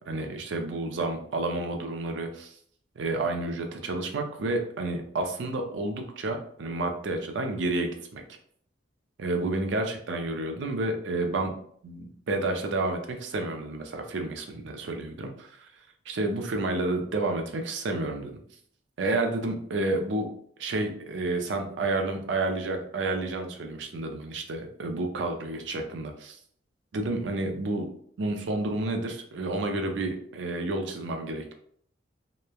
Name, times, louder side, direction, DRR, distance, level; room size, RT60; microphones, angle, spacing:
voice 1, 0.1-2.5 3.0-8.2 9.2-11.5 11.8-15.3 16.1-18.4 19.0-20.3 20.6-26.4 26.9-27.9 28.2-31.5, right 2 dB, 70° right, 4 dB, 0.4 m, -30 dB
3.0 x 2.1 x 2.2 m, 0.63 s
head